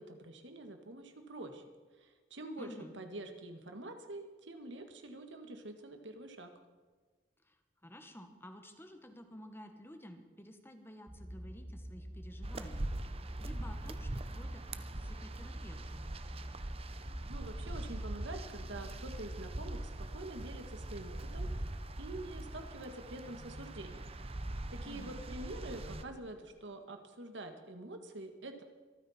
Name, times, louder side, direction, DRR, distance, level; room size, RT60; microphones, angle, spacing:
voice 1, 0.0-1.6 2.0-6.5 17.3-21.7 22.0-24.1 24.7-28.6, right 1 dB, 85° right, 6 dB, 1.8 m, -46 dB
voice 2, 2.6-2.9 7.5-7.6 7.8-13.0 13.4-14.6 14.9-16.0 24.8-25.1, equal, 15° left, 6 dB, 1.4 m, -52 dB
sound 1, 11.1-24.2, equal, 10° right, 1.4 m, -48 dB
sound 2, 12.4-26.0, right 1 dB, 35° right, 0.7 m, -42 dB
25.0 x 9.6 x 4.4 m, 1.4 s
head